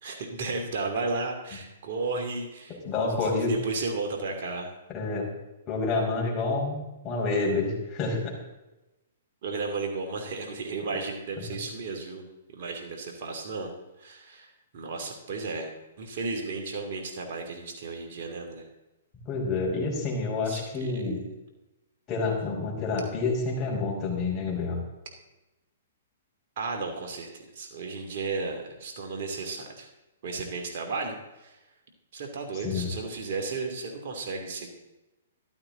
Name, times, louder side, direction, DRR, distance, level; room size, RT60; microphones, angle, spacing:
voice 1, 0.0-4.7 9.4-12.2 12.5-13.7 14.0-18.7 20.5-21.0 26.6-29.9 30.2-31.6 32.1-34.7, right 3 dB, 55° right, 2 dB, 2.7 m, -34 dB
voice 2, 2.8-3.5 4.9-5.3 5.7-8.3 19.2-21.2 22.1-24.8 32.6-32.9, left 3 dB, 25° left, -2 dB, 5.2 m, -28 dB
14.5 x 12.5 x 3.9 m, 1.0 s
hypercardioid pair, 130°, 0 cm